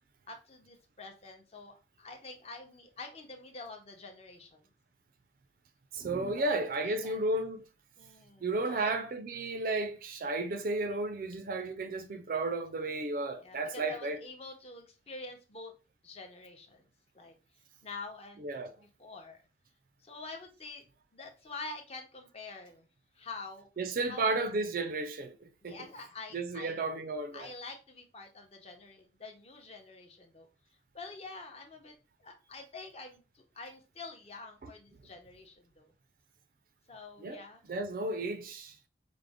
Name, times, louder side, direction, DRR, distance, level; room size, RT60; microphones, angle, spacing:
voice 1, 0.3-4.6 6.3-7.2 8.0-8.9 13.4-15.7 16.0-16.9 17.1-17.3 17.8-18.5 18.8-19.4 20.0-20.8 21.1-22.9 23.1-23.7 24.1-24.5 25.6-26.8 27.3-30.5 30.9-31.9 32.2-35.9 36.9-37.6, left 3 dB, 35° left, 0.7 m, -47 dB
voice 2, 5.9-7.6 8.4-14.2 18.4-18.7 23.8-25.9 26.3-27.5 34.6-34.7 37.2-37.4 37.7-38.8, right 2 dB, 45° right, 0.4 m, -33 dB
4.9 x 2.1 x 3.5 m
head